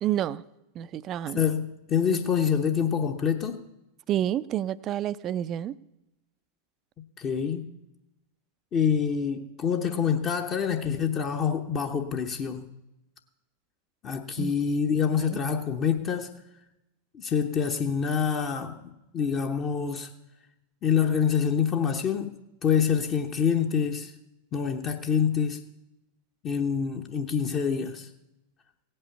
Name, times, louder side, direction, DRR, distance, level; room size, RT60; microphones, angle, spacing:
voice 1, 0.0-0.4 0.8-1.4 4.1-5.7 14.4-14.5 15.2-15.4, right 11 dB, 30° right, 0.5 m, -29 dB
voice 2, 1.3-3.6 7.2-7.6 8.7-12.6 14.0-16.3 17.1-20.1 20.8-24.1 24.5-25.6 26.4-28.1, left 7 dB, 30° left, 0.9 m, -26 dB
17.0 x 8.7 x 7.0 m
figure-of-eight pair, 90°, 0 cm